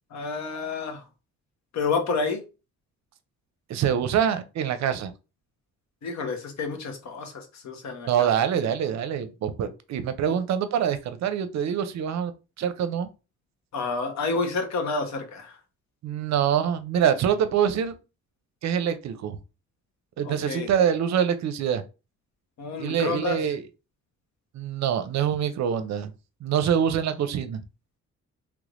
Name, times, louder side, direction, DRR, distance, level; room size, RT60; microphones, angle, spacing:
voice 1, 0.1-1.1 1.7-2.4 6.0-8.3 10.3-10.4 13.7-15.6 20.2-20.7 22.6-23.4, left 4 dB, 65° left, 1.1 m, -29 dB
voice 2, 3.7-5.1 8.1-12.3 12.6-13.1 16.0-18.0 18.6-19.4 20.2-21.8 22.8-23.6 24.5-26.1 26.4-27.6, right 8 dB, 65° right, 0.5 m, -25 dB
3.3 x 3.2 x 2.5 m
cardioid pair, 90°, 30 cm